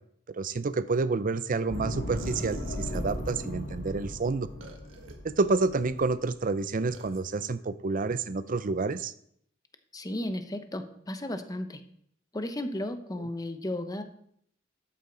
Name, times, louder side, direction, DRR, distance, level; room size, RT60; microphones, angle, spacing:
voice 1, 0.3-4.5 5.2-9.1, right 3 dB, 45° right, 14 dB, 0.5 m, -29 dB
sound 1, 1.7-6.7, left 1 dB, 60° left, 1.7 m, -37 dB
sound 2, 2.2-3.5 4.6-5.1 5.7-6.1 6.9-7.2, right 2 dB, 90° right, 1.5 m, -46 dB
voice 2, 9.9-11.8 12.3-14.0, left 1 dB, 20° left, 8 dB, 0.8 m, -34 dB
12.5 x 8.5 x 3.9 m, 0.69 s
head